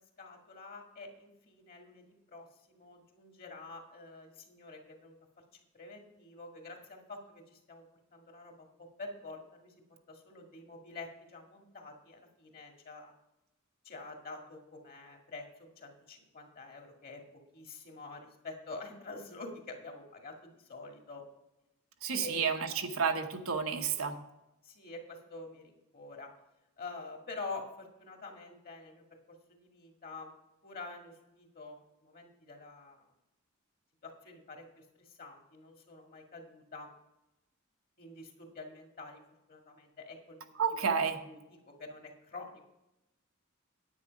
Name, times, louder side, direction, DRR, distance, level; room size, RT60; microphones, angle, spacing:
voice 1, 0.2-5.1 5.5-7.8 8.1-8.7 9.0-9.7 10.1-13.1 13.8-17.2 17.5-21.2 22.1-22.5 23.8-23.9 24.6-26.3 26.8-30.3 30.6-33.1 34.0-36.9 38.0-39.2 39.5-40.9 41.2-41.4 41.7-42.6, left 3 dB, 45° left, 2 dB, 2.0 m, -47 dB
voice 2, 22.0-24.2 40.6-41.2, right 6 dB, 90° right, 5 dB, 1.2 m, -31 dB
9.8 x 8.7 x 5.2 m, 0.93 s
head